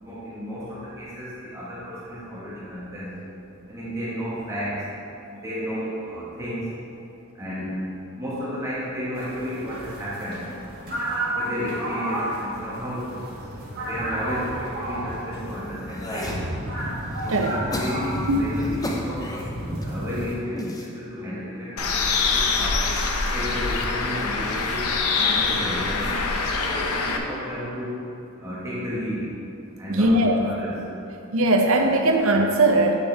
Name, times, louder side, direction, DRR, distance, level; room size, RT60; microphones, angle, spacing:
voice 1, 0.0-3.1 3.7-4.8 5.3-6.7 7.3-7.7 8.2-10.4 11.3-13.2 13.8-16.3 17.2-19.2 19.8-22.8 23.3-24.9 25.1-27.9 28.4-29.2 29.8-30.8, equal, 15° right, -10 dB, 1.6 m, -32 dB
sound 1, 9.1-20.3, right 1 dB, 45° right, 1.6 m, -31 dB
sound 2, 15.3-16.4 16.9-19.9 20.4-20.9 21.7-22.1, left 1 dB, 15° left, 0.5 m, -35 dB
Bird, 21.8-27.2, left 4 dB, 80° left, 0.7 m, -24 dB
voice 2, 29.9-30.4 31.3-32.9, right 1 dB, 65° right, 3 dB, 0.7 m, -19 dB
8.2 x 6.6 x 3.5 m, 2.8 s
head